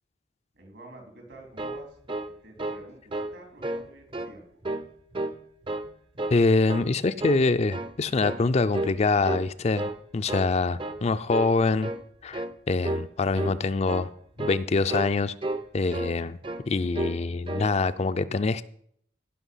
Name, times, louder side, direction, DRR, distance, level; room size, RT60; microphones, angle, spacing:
voice 1, 0.5-2.0 2.4-4.5, right 2 dB, 80° right, 3.9 m, -48 dB
sound 1, 1.3-2.8 3.1-3.4 3.6-4.3 4.6-5.4 5.7-6.4 6.7-6.9 7.2-8.0 8.2-8.5 8.7-9.0 9.2-10.0 10.3-10.5 10.8-11.0 11.3-11.6 11.8-12.1 12.3-12.5 12.8-13.1 13.3-13.6 13.8-14.1 14.4-14.6 14.9-15.1 15.4-16.2 16.4-16.6 16.9-17.2 17.5-17.7, right 2 dB, 30° right, 0.5 m, -32 dB
voice 2, 6.3-11.9 12.2-14.1 14.4-15.3 15.7-16.4 16.7-18.6, left 3 dB, 35° left, 0.4 m, -25 dB
16.0 x 5.9 x 5.6 m
head